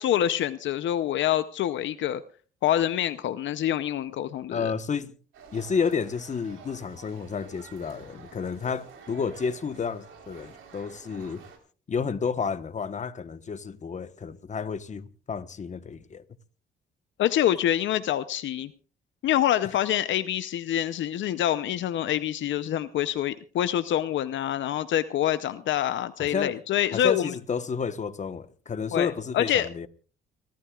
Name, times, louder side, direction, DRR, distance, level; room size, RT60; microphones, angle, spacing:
voice 1, 0.0-2.2 2.6-4.7 17.2-18.7 19.2-27.3 28.9-29.7, left 11 dB, 70° left, 0.7 m, -26 dB
voice 2, 4.5-5.1 5.5-11.4 11.9-16.2 26.2-26.5 26.9-29.9, left 5 dB, 35° left, 1.1 m, -31 dB
sound 1, 5.3-11.6, right 6 dB, 80° right, 3.8 m, -49 dB
30.0 x 13.5 x 2.4 m
cardioid pair, 90°, 20 cm